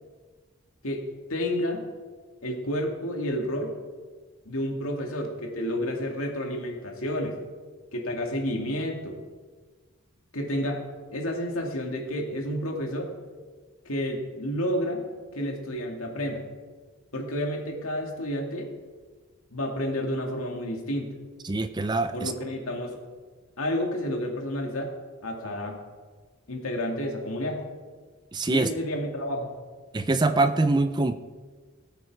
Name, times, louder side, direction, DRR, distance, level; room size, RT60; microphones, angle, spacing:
voice 1, 0.8-1.8 2.4-3.7 4.5-7.4 7.9-9.2 10.3-10.8 11.1-13.1 13.9-15.0 15.3-16.4 17.1-18.7 19.5-21.1 22.1-23.0 23.6-24.9 25.2-25.8 26.5-27.7 28.5-29.5, equal, 85° left, 1 dB, 2.3 m, -30 dB
voice 2, 21.4-22.3 28.3-28.7 29.9-31.1, right 2 dB, 20° right, 11 dB, 0.4 m, -24 dB
18.5 x 8.2 x 4.8 m, 1.5 s
head